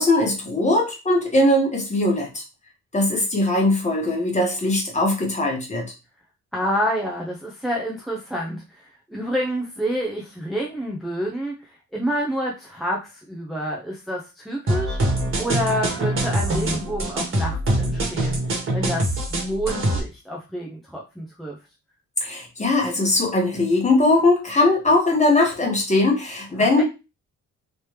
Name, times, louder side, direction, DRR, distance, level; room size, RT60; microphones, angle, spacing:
voice 1, 0.0-2.4 2.9-5.8 22.2-26.8, left 2 dB, 20° left, 0 dB, 1.2 m, -20 dB
voice 2, 6.5-18.4 18.7-21.6 26.6-26.8, equal, ahead, -3 dB, 0.6 m, -28 dB
sound 1, 14.7-20.0, right 1 dB, 40° right, 1.4 m, -24 dB
3.2 x 2.9 x 3.2 m, 0.28 s
cardioid pair, 125°, 31 cm